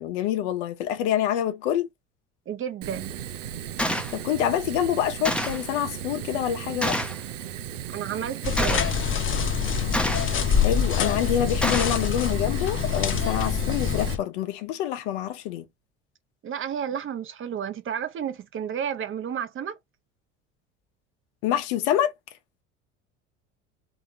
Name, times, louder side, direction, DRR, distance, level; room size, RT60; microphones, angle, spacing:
voice 1, 0.0-1.9 4.1-7.0 10.6-15.7 21.4-22.1, left 11 dB, 70° left, 0.9 m, -26 dB
voice 2, 2.5-3.1 7.9-9.1 16.4-19.8, right 8 dB, 35° right, 0.8 m, -32 dB
Fire, 2.8-14.1, right 10 dB, 90° right, 0.5 m, -36 dB
Gunshot gunfire, 3.8-4.1 5.3-5.7 6.8-7.2 8.6-9.0 9.9-10.4 11.6-12.0, left 1 dB, 5° left, 0.7 m, -27 dB
sound 1, 8.4-14.2, left 7 dB, 35° left, 0.9 m, -25 dB
3.7 x 2.9 x 2.6 m
hypercardioid pair, 70°, 36 cm